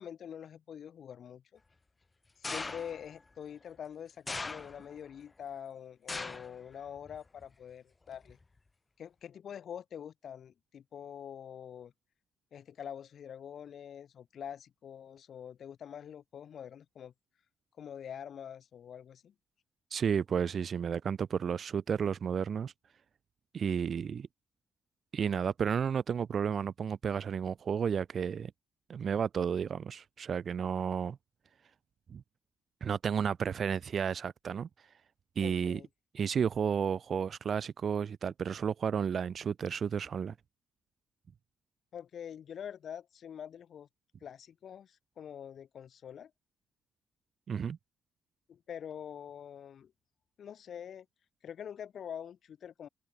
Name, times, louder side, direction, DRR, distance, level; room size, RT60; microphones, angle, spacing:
voice 1, 0.0-1.6 2.4-8.4 9.0-11.9 12.5-17.1 17.8-19.3 35.4-35.9 41.9-43.9 44.2-46.3 48.5-49.9 50.4-51.1 51.4-52.9, left 8 dB, 60° left, 1.8 m, -45 dB
sound 1, 2.4-3.1 4.3-5.0 6.1-6.6 7.0-7.4 8.3-8.4, left 3 dB, 25° left, 2.2 m, -39 dB
voice 2, 19.9-22.7 23.5-24.3 25.1-28.5 28.9-31.2 32.1-32.2 32.8-34.7 35.4-35.8 36.1-40.3 47.5-47.8, right 7 dB, 50° right, 0.5 m, -32 dB
cardioid pair, 90°, 0 cm